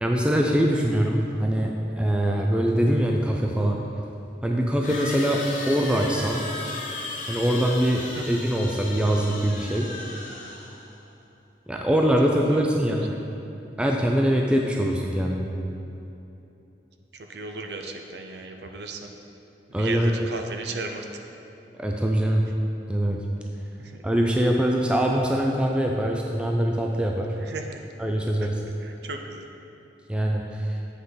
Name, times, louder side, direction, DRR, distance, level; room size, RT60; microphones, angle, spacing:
voice 1, 0.0-1.7 2.0-3.8 4.4-6.5 7.3-9.9 11.7-13.2 13.8-15.5 19.7-20.1 21.8-22.4 22.9-23.2 24.0-27.3 28.0-28.6 30.1-30.8, equal, 5° right, 0 dB, 0.3 m, -23 dB
sound 1, 3.2-3.3 4.8-11.0, left 2 dB, 45° left, 1.0 m, -36 dB
voice 2, 12.5-13.0 17.3-19.1 19.7-21.1 23.8-23.9 27.4-27.8 28.8-29.5, right 3 dB, 70° right, 4 dB, 0.5 m, -36 dB
8.2 x 5.5 x 3.9 m, 2.9 s
head